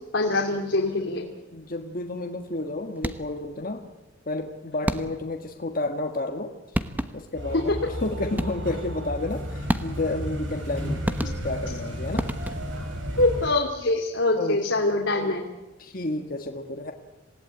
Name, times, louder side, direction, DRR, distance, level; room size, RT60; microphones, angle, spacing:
voice 1, 0.1-1.3 7.5-7.8 13.2-15.4, left 2 dB, 80° left, 1 dB, 2.6 m, -24 dB
voice 2, 1.5-3.8 4.3-6.8 7.1-12.3 14.4-14.6 15.1-15.3 15.8-16.9, left 2 dB, 45° left, 4 dB, 1.6 m, -31 dB
sound 1, 3.0-3.5 4.9-5.4 6.4-6.5 6.7-7.4 8.4-8.8 9.7-10.2 11.0-11.7 12.2-12.9, equal, 10° right, 1.1 m, -30 dB
sound 2, 7.3-13.5, equal, 75° right, 7.4 m, -33 dB
27.0 x 18.0 x 9.2 m, 1.1 s
head